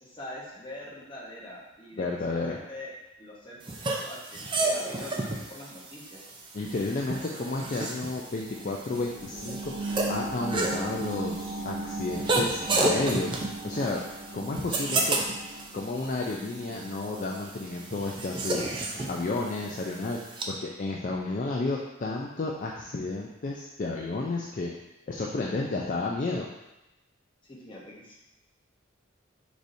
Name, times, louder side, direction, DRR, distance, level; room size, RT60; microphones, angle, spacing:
voice 1, 0.0-6.2 27.4-28.2, left 1 dB, 25° left, -5 dB, 1.0 m, -44 dB
voice 2, 2.0-2.6 6.5-14.0 14.3-15.2 15.7-18.7 19.1-24.7 25.1-26.5, left 3 dB, 40° left, -1 dB, 0.4 m, -32 dB
sound 1, 3.6-20.4, right 2 dB, 25° right, 0.4 m, -32 dB
sound 2, 8.3-19.4 19.9-20.0, right 2 dB, 60° right, 1.1 m, -39 dB
4.8 x 4.1 x 2.6 m, 0.94 s
head